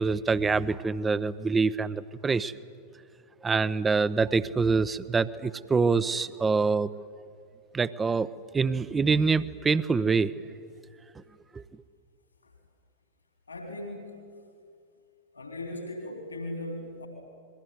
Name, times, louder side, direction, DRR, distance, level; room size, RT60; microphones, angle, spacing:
voice 1, 0.0-2.5 3.4-6.9 7.7-8.3 8.5-10.3 11.5-11.6, right 4 dB, 15° right, 16 dB, 0.8 m, -25 dB
voice 2, 13.5-14.3 15.3-17.1, left 1 dB, 80° left, 3 dB, 3.7 m, -38 dB
28.0 x 22.0 x 9.5 m, 2.2 s
figure-of-eight pair, 90°, 0 cm